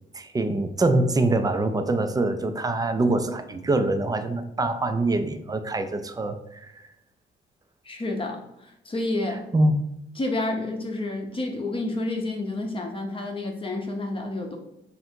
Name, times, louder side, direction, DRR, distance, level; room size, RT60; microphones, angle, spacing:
voice 1, 0.1-6.9 9.5-9.8, right 2 dB, 20° right, 8 dB, 0.4 m, -24 dB
voice 2, 7.8-9.4 10.2-14.6, left 2 dB, 25° left, 2 dB, 0.7 m, -29 dB
3.4 x 2.6 x 4.4 m, 0.84 s
cardioid pair, 90°, 20 cm